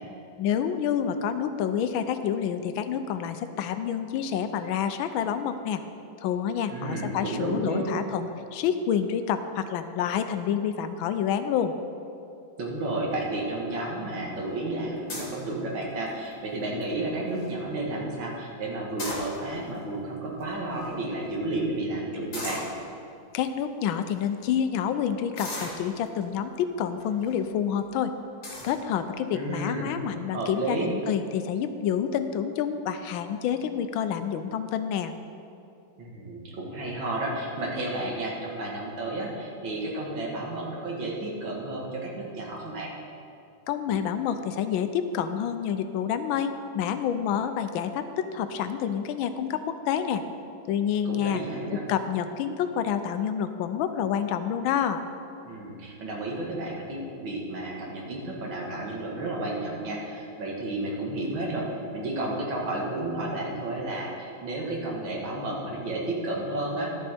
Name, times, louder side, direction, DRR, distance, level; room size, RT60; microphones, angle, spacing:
voice 1, 0.4-5.8 6.2-11.7 23.3-28.1 28.6-35.1 43.7-50.2 50.7-51.4 51.9-55.0, left 8 dB, 80° left, 9 dB, 1.3 m, -28 dB
voice 2, 6.7-7.9 12.6-22.6 29.3-29.9 30.3-30.9 36.0-42.9 51.0-51.8 55.5-61.7 61.9-66.9, right 2 dB, 70° right, -2 dB, 2.3 m, -32 dB
sound 1, 15.1-15.4 16.1-16.4 16.8-16.9 17.1-17.5 18.8-19.7 20.4-20.5 20.7-20.9 22.3-22.7 23.4-23.5 24.1-24.3 25.4-26.2 27.0-27.3 27.8-27.9 28.4-28.8, left 1 dB, 40° left, 2.0 m, -36 dB
12.0 x 7.0 x 4.3 m, 2.6 s
omnidirectional pair, 2.2 m